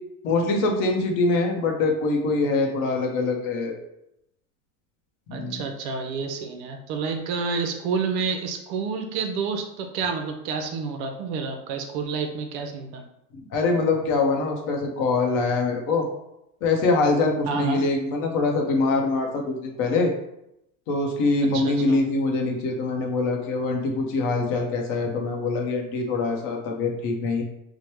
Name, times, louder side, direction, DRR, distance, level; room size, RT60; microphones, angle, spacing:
voice 1, 0.2-3.8 5.3-5.6 13.5-16.1 16.6-20.1 20.9-27.4, left 3 dB, 45° left, 2 dB, 0.7 m, -24 dB
voice 2, 5.3-13.0 17.5-17.8 21.5-22.0, right 5 dB, 50° right, 5 dB, 0.5 m, -29 dB
3.2 x 2.1 x 2.9 m, 0.80 s
supercardioid pair, 125°, 44 cm